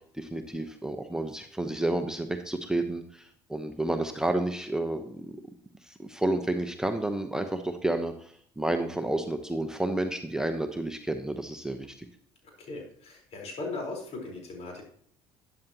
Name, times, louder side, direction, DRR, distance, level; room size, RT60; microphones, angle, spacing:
voice 1, 0.1-5.4 5.8-12.1, right 1 dB, 5° right, 6 dB, 1.0 m, -31 dB
voice 2, 12.4-14.8, left 3 dB, 55° left, 0 dB, 4.5 m, -38 dB
12.0 x 9.1 x 3.0 m, 0.62 s
hypercardioid pair, 70°, 13 cm